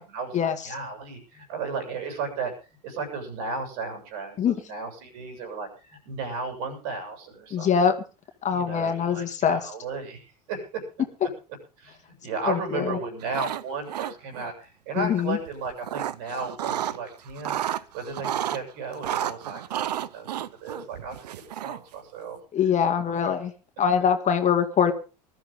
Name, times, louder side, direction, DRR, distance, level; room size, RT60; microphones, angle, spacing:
voice 1, 0.0-7.7 8.5-10.8 11.8-21.3 21.6-22.4 22.9-23.3, right 4 dB, 65° right, 4 dB, 7.7 m, -35 dB
voice 2, 7.5-7.9 8.4-9.7 12.5-13.0 15.0-15.4 22.5-23.5 23.8-24.9, left 7 dB, 35° left, 7 dB, 2.2 m, -23 dB
sound 1, 13.2-13.6 13.9-14.5 15.5-17.0 17.3-18.6 19.0-21.9, right 11 dB, 80° right, 0.7 m, -31 dB
20.5 x 13.0 x 3.8 m, 0.34 s
hypercardioid pair, 80°, 20 cm